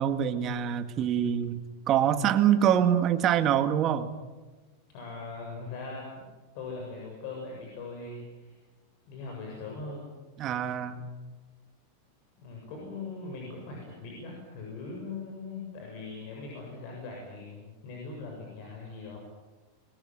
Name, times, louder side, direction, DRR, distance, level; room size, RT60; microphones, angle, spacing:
voice 1, 0.0-4.1 10.4-11.1, right 9 dB, 35° right, 8 dB, 1.9 m, -25 dB
voice 2, 4.9-6.3 6.5-8.5 9.1-10.1 12.4-19.2, left 3 dB, 50° left, 0 dB, 7.4 m, -40 dB
23.0 x 21.0 x 9.3 m, 1.2 s
supercardioid pair, 145°, 0 cm